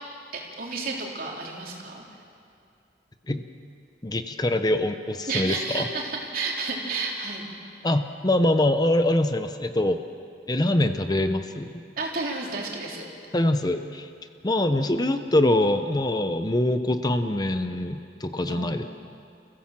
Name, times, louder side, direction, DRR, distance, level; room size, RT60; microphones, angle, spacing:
voice 1, 0.3-2.0 5.3-7.5 12.0-13.1 18.5-18.9, right 3 dB, 55° right, -1 dB, 3.6 m, -31 dB
voice 2, 4.0-5.9 7.8-10.0 10.5-11.7 13.3-14.1 14.4-18.8, left 1 dB, 25° left, 8 dB, 0.7 m, -24 dB
29.0 x 16.0 x 7.5 m, 2.5 s
head